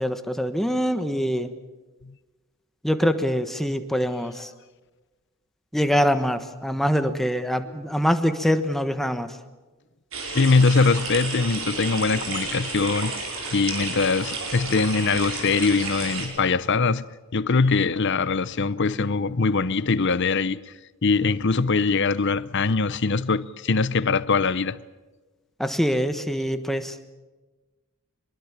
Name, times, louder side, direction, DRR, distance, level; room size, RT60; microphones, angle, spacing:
voice 1, 0.0-1.5 2.8-4.5 5.7-9.4 25.6-27.0, equal, ahead, 1.3 m, -24 dB
sound 1, 10.1-16.3, right 3 dB, 65° right, 5.6 m, -32 dB
voice 2, 10.3-13.1 13.5-17.0 17.3-20.6 21.0-24.8, left 4 dB, 55° left, 0.8 m, -22 dB
24.0 x 22.0 x 7.4 m
head